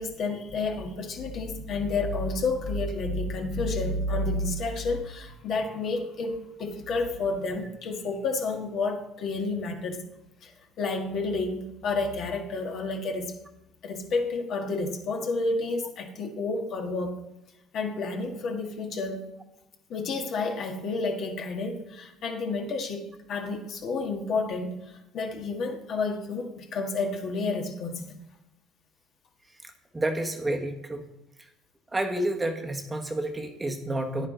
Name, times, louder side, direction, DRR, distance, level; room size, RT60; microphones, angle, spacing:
voice 1, 0.0-10.0 10.4-13.3 13.8-17.1 17.7-19.2 19.9-24.8 25.1-28.1, left 3 dB, 55° left, 3 dB, 1.6 m, -30 dB
voice 2, 29.6-31.1 31.9-34.3, right 1 dB, 15° right, 5 dB, 1.1 m, -30 dB
9.9 x 9.1 x 3.9 m, 0.91 s
supercardioid pair, 95°, 0 cm